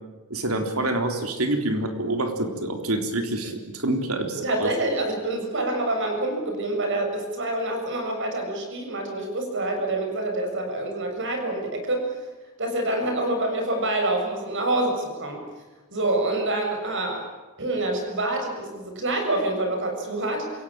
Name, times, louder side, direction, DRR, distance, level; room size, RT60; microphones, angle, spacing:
voice 1, 0.3-4.7, right 1 dB, 75° right, 5 dB, 3.7 m, -27 dB
voice 2, 4.3-12.1 12.6-15.4 15.9-17.3 17.6-20.5, right 2 dB, 60° right, 4 dB, 7.2 m, -26 dB
28.0 x 17.5 x 8.9 m, 1.2 s
head